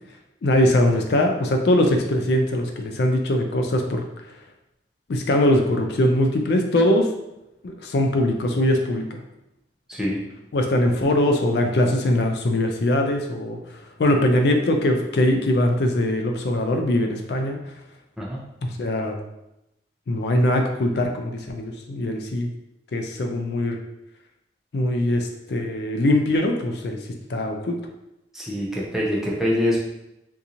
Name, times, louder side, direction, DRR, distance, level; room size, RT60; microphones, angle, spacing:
voice 1, 0.4-4.0 5.1-7.1 7.6-9.2 10.5-17.6 18.6-19.2 20.1-22.5 22.9-23.8 24.7-27.0 27.3-27.8, left 1 dB, 60° left, 3 dB, 0.4 m, -21 dB
voice 2, 28.3-29.8, left 1 dB, ahead, -5 dB, 0.6 m, -24 dB
3.6 x 2.6 x 2.9 m, 0.89 s
head